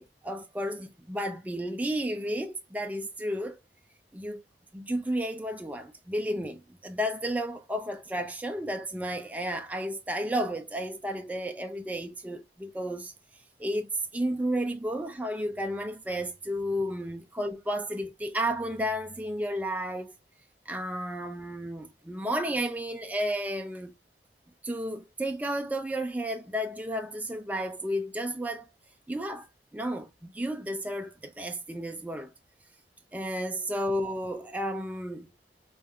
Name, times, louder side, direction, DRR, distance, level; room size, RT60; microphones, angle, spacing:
voice 1, 0.0-3.6 4.1-4.4 4.7-13.1 13.6-20.1 20.7-23.9 24.6-28.6 29.1-29.5 29.7-32.3 33.1-35.3, equal, 10° right, 0.3 m, -32 dB
4.9 x 2.3 x 2.6 m
head